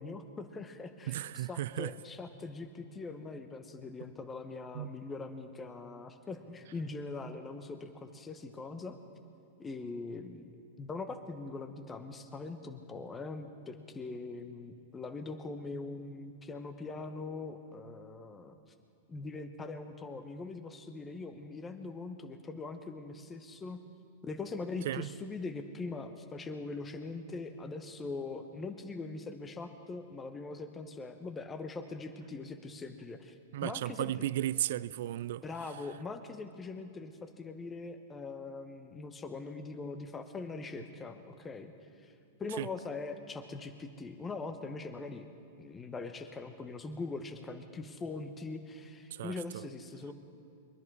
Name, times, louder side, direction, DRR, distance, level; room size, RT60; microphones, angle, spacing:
voice 1, 0.0-9.0 9.6-10.5 10.8-18.5 19.1-23.8 24.2-33.3 33.6-34.1 35.4-41.7 42.0-42.1 42.4-45.3 45.6-50.1, left 3 dB, 20° left, 1.1 m, -42 dB
voice 2, 1.1-1.9 4.7-4.9 24.8-25.1 33.5-35.4 42.6-42.7 49.1-49.4, right 13 dB, 60° right, 0.4 m, -34 dB
23.5 x 10.5 x 4.9 m
figure-of-eight pair, 100°, 0 cm